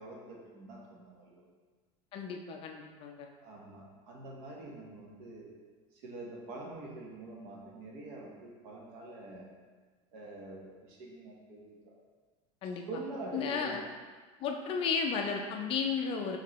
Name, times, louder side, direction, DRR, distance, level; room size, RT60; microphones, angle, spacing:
voice 1, 0.0-1.4 3.4-5.5 5.9-9.5 10.1-11.9 12.9-13.8, right 2 dB, 65° right, -2 dB, 1.0 m, -45 dB
voice 2, 2.1-3.3 12.6-12.8 13.3-13.8 14.4-16.4, left 5 dB, 35° left, 3 dB, 0.4 m, -33 dB
4.4 x 3.2 x 3.0 m, 1.5 s
supercardioid pair, 140°, 16 cm